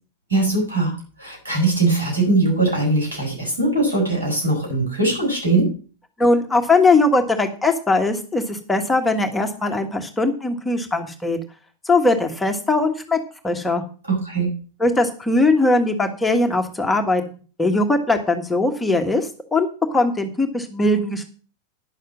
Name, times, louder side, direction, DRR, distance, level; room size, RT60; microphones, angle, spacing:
voice 1, 0.3-5.7 14.1-14.5, right 2 dB, 75° right, -2 dB, 7.6 m, -21 dB
voice 2, 6.2-11.4 11.8-13.2 13.4-13.8 14.8-17.2 17.6-21.2, left 2 dB, 10° left, 4 dB, 1.4 m, -20 dB
10.5 x 6.5 x 7.4 m, 0.38 s
figure-of-eight pair, 90°, 0 cm